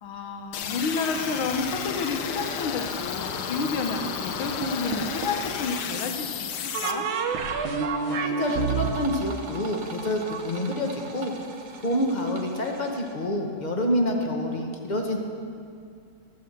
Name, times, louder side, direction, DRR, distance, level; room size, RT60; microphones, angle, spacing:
voice 1, 0.0-7.1, left 4 dB, 80° left, 4 dB, 1.9 m, -30 dB
sound 1, 0.5-6.9, left 7 dB, 65° left, 1.1 m, -32 dB
sound 2, 4.6-5.5 6.7-10.4, right 5 dB, 85° right, 1.7 m, -29 dB
voice 2, 8.1-11.3 11.8-15.2, left 1 dB, 40° left, 2 dB, 0.6 m, -27 dB
sound 3, 8.4-13.3, right 4 dB, 65° right, 1.7 m, -43 dB
13.5 x 5.6 x 7.7 m, 2.3 s
omnidirectional pair, 2.2 m